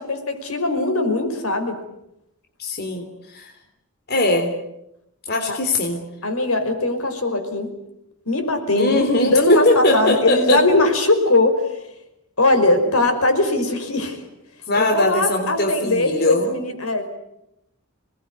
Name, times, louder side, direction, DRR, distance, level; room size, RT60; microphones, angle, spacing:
voice 1, 0.0-1.8 5.5-5.6 6.2-7.7 8.3-11.8 12.4-14.2 14.7-17.2, left 2 dB, 80° left, 6 dB, 5.4 m, -20 dB
voice 2, 2.6-3.5 4.1-4.6 5.3-6.0 8.8-10.6 14.7-16.5, left 2 dB, 50° left, 4 dB, 3.5 m, -20 dB
27.0 x 20.5 x 9.6 m, 0.85 s
head